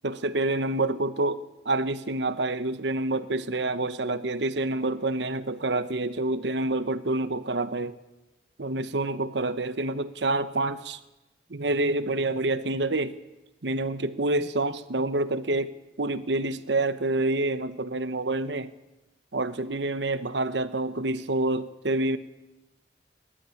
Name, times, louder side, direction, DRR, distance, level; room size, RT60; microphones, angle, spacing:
voice 1, 0.0-8.0 8.6-11.0 11.5-13.2 13.6-18.7 19.3-22.2, right 2 dB, 85° right, 13 dB, 1.1 m, -27 dB
21.5 x 12.5 x 9.8 m, 1.0 s
head